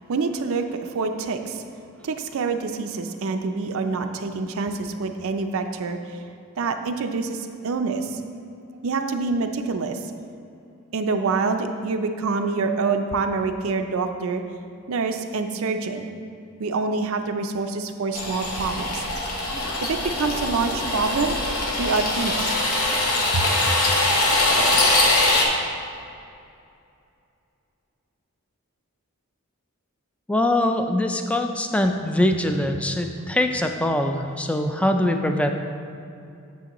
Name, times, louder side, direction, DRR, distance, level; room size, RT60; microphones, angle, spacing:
voice 1, 0.1-1.6 2.0-6.2 6.6-8.2 8.8-10.1 10.9-14.4 14.9-16.1 16.6-19.0 19.9-21.4 21.8-22.5 23.3-23.4, right 4 dB, 70° right, 6 dB, 0.5 m, -26 dB
sound 1, 18.1-25.4, left 2 dB, 80° left, 1.1 m, -22 dB
voice 2, 30.3-35.5, left 1 dB, 5° left, 5 dB, 0.3 m, -23 dB
8.4 x 7.1 x 3.0 m, 2.5 s
head